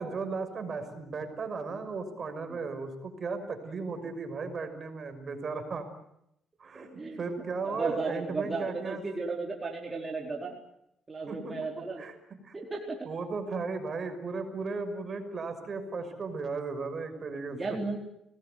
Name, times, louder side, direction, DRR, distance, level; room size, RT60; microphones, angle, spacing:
voice 1, 0.0-5.9 6.6-9.0 11.3-12.1 12.4-12.6 13.1-17.8, right 4 dB, 45° right, 8 dB, 5.9 m, -36 dB
voice 2, 6.7-7.2 7.6-10.6 11.1-12.0 12.5-13.0 17.5-18.0, right 3 dB, 25° right, 0 dB, 4.5 m, -34 dB
26.5 x 19.5 x 9.6 m, 0.79 s
cardioid pair, 90°, 0 cm